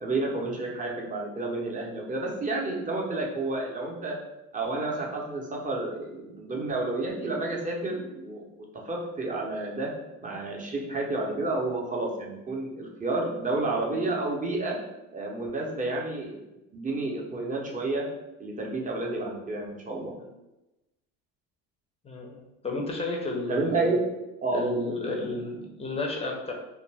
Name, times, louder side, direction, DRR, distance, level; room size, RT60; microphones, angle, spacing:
voice 1, 0.0-4.2 4.5-8.4 8.9-9.9 10.2-14.8 15.1-16.4 16.7-18.1 18.4-20.1 23.5-24.0 24.4-25.2, right 2 dB, 20° right, -2 dB, 0.7 m, -30 dB
voice 2, 22.0-24.0 24.5-26.5, left 2 dB, 15° left, 1 dB, 0.5 m, -32 dB
2.5 x 2.2 x 3.3 m, 0.98 s
supercardioid pair, 85°, 38 cm